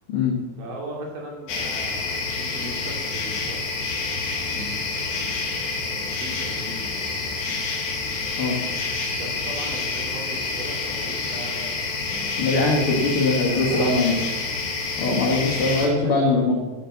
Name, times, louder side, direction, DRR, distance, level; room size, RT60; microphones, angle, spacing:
voice 1, 0.6-3.7 4.5-7.4 9.2-13.0 13.5-14.3 15.2-16.1, right 1 dB, 55° right, -1 dB, 3.9 m, -38 dB
sound 1, 1.5-15.9, left 3 dB, 90° left, 4.6 m, -28 dB
voice 2, 12.4-14.1 15.0-16.5, left 3 dB, 55° left, 0 dB, 1.5 m, -21 dB
13.0 x 7.9 x 7.2 m, 1.2 s
omnidirectional pair, 4.9 m